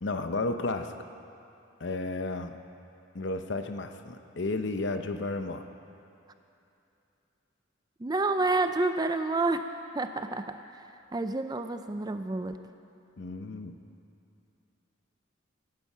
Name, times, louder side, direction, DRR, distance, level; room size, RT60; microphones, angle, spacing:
voice 1, 0.0-0.9 1.8-2.6 3.1-5.6 13.2-13.7, left 2 dB, 55° left, 7 dB, 0.7 m, -32 dB
voice 2, 8.0-9.6 9.9-10.8 11.1-12.6, right 2 dB, 20° right, 9 dB, 0.4 m, -29 dB
17.5 x 10.5 x 5.6 m, 2.8 s
head